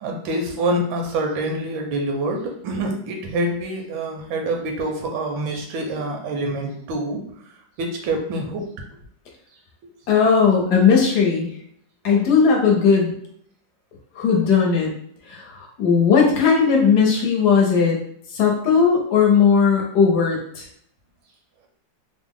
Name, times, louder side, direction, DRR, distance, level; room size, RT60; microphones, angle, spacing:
voice 1, 0.0-7.2 7.8-8.7, right 1 dB, 90° right, 2 dB, 1.5 m, -26 dB
voice 2, 10.1-11.5 12.0-13.1 14.1-14.9 15.3-18.0 18.3-20.7, left 6 dB, 65° left, -1 dB, 1.2 m, -17 dB
3.5 x 2.1 x 3.5 m, 0.68 s
omnidirectional pair, 2.1 m